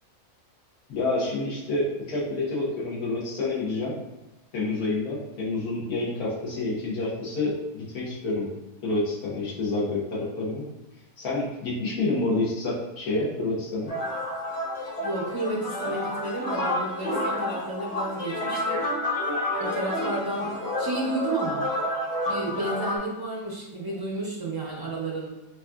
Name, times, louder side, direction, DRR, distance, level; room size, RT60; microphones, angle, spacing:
voice 1, 0.9-4.0 4.5-8.5 8.8-10.7 11.2-13.9, left 2 dB, 80° left, -7 dB, 1.7 m, -28 dB
sound 1, 13.9-23.0, left 1 dB, 35° left, 0.7 m, -29 dB
voice 2, 15.0-18.9 19.6-21.7 22.3-25.3, right 1 dB, 30° right, -5 dB, 0.4 m, -31 dB
4.8 x 2.8 x 2.4 m, 1.0 s
omnidirectional pair, 1.6 m